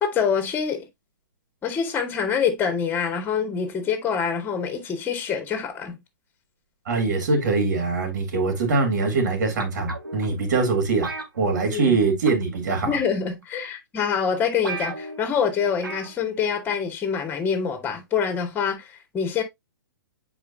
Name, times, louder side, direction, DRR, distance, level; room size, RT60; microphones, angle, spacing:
voice 1, 0.0-0.9 1.6-6.0 11.7-12.0 12.8-19.4, left 7 dB, 20° left, 2.3 m, -25 dB
voice 2, 6.9-11.1 11.4-12.9, right 4 dB, 60° right, 3.6 m, -23 dB
sound 1, 9.6-10.3 11.0-12.0 12.3-12.6 13.4-13.5 14.0-14.1 14.3-14.4 14.6-15.3 15.8-16.2 16.5-16.6, right 3 dB, 85° right, 2.0 m, -34 dB
8.4 x 4.8 x 2.9 m
figure-of-eight pair, 120°, 11 cm